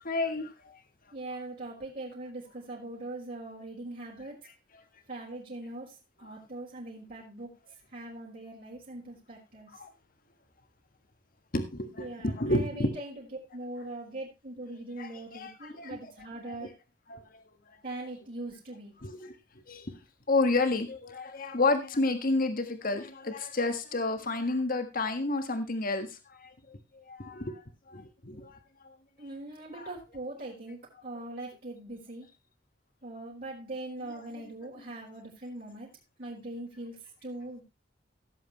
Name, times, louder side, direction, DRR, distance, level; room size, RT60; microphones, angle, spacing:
voice 1, 0.0-0.5 9.7-9.9 11.5-13.0 15.0-16.1 16.5-16.7 17.1-17.2 19.0-19.3 19.7-20.0 20.3-26.1 26.4-28.5 28.8-28.9 29.7-29.9, left 2 dB, 50° left, 1.6 m, -30 dB
voice 2, 1.1-4.3 5.1-7.5 7.9-9.7 12.0-13.3 13.5-16.7 17.8-18.9 29.2-32.3 33.0-35.9 36.2-37.6, right 2 dB, 50° right, 4.0 m, -41 dB
17.0 x 7.9 x 3.1 m
head